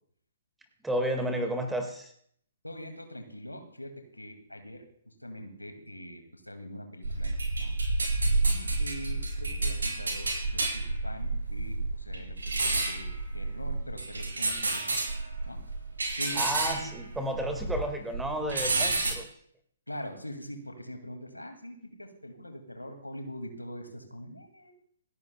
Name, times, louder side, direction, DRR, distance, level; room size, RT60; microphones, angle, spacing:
voice 1, 0.8-2.1 16.3-19.3, right 1 dB, 5° right, 5 dB, 1.8 m, -32 dB
voice 2, 2.6-4.8 5.2-7.3 7.6-7.7 8.4-14.9 15.5-15.6 16.1-16.4 18.6-18.9 19.9-24.7, equal, 85° left, 5 dB, 2.1 m, -43 dB
sound 1, 7.0-17.9 18.1-19.1, right 2 dB, 65° right, 5.1 m, -30 dB
27.5 x 11.0 x 2.2 m, 0.64 s
figure-of-eight pair, 130°, 0 cm